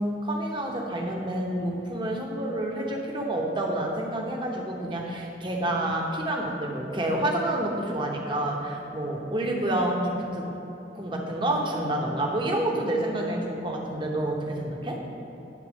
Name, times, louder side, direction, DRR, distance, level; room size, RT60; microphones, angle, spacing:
voice 1, 0.0-10.5 10.9-15.0, right 1 dB, 30° right, -1 dB, 1.0 m, -28 dB
10.0 x 4.0 x 6.3 m, 3.0 s
head